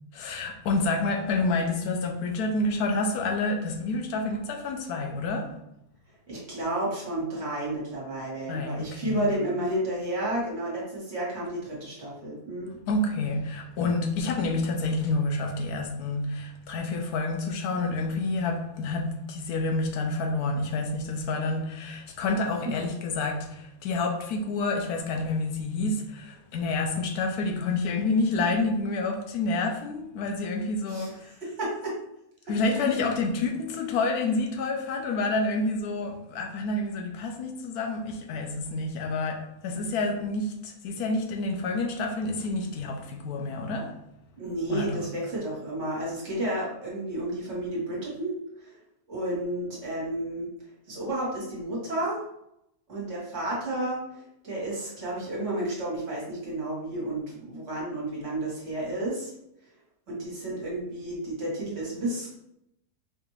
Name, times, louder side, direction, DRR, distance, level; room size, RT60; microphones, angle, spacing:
voice 1, 0.1-5.6 8.5-9.3 12.9-31.3 32.5-44.0 44.7-45.1, left 3 dB, 80° left, 1.1 m, -28 dB
voice 2, 6.3-12.7 30.9-31.1 31.4-31.9 44.4-48.7 49.1-50.5 50.9-52.2 52.9-54.0 54.4-59.3 60.1-62.4, right 1 dB, 50° right, 1.6 m, -31 dB
4.7 x 2.5 x 3.1 m
omnidirectional pair, 1.6 m